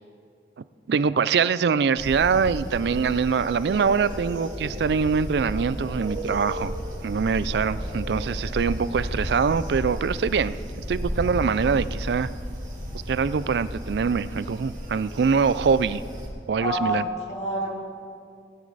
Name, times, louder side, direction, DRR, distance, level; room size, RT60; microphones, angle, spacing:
voice 1, 0.9-6.7 7.0-10.6 10.9-12.3 13.1-16.0 16.5-17.0, right 5 dB, 65° right, 16 dB, 0.4 m, -23 dB
sound 1, 2.0-16.3, equal, 45° right, 2.7 m, -33 dB
voice 2, 16.6-17.7, equal, 40° left, -3 dB, 2.5 m, -27 dB
17.5 x 9.7 x 4.0 m, 2.3 s
head